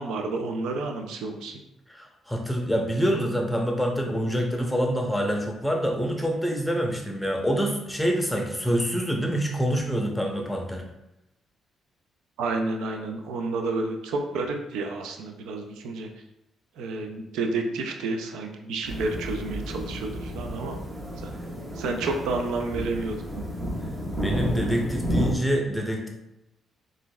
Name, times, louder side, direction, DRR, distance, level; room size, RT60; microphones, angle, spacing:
voice 1, 0.0-1.5 12.4-16.1 16.8-20.8 21.2-21.3 21.8-23.2, right 3 dB, 85° right, 4 dB, 0.4 m, -30 dB
voice 2, 1.9-10.8 24.2-26.1, equal, 5° left, 1 dB, 0.7 m, -26 dB
sound 1, 18.8-25.4, equal, 35° right, 1.3 m, -31 dB
3.8 x 2.5 x 2.2 m, 0.89 s
supercardioid pair, 65°, 0 cm